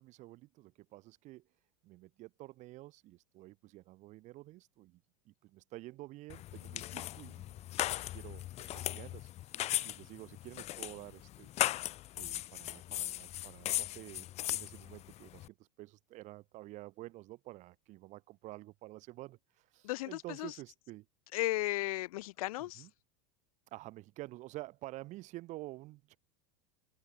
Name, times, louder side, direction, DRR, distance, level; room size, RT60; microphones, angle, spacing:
voice 1, 0.0-1.4 1.8-7.7 7.9-8.4 8.7-9.3 9.8-11.5 12.1-15.5 15.8-21.0 22.6-22.9 23.7-26.2, right 18 dB, 45° right, 1.1 m, -50 dB
sound 1, 6.3-15.5, left 14 dB, 35° left, 1.6 m, -38 dB
voice 2, 19.8-20.5 21.3-22.8, left 18 dB, 85° left, 0.4 m, -35 dB
supercardioid pair, 140°, 18 cm